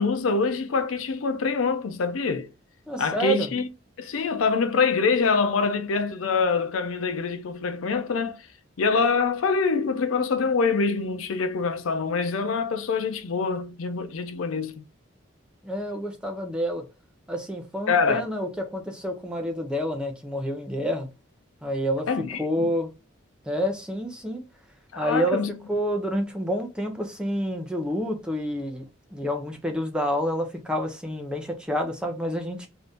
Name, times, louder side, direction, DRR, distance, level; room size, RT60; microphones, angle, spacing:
voice 1, 0.0-2.5 3.0-3.7 4.0-8.4 8.8-14.8 17.9-18.2 22.1-22.7 24.9-25.5, left 4 dB, 90° left, 0.5 m, -25 dB
voice 2, 2.9-3.5 15.6-16.8 17.3-21.1 21.6-22.1 22.4-22.9 23.5-24.4 25.0-25.4 25.7-28.8 29.1-32.7, equal, 5° right, 0.5 m, -28 dB
2.7 x 2.5 x 3.4 m
head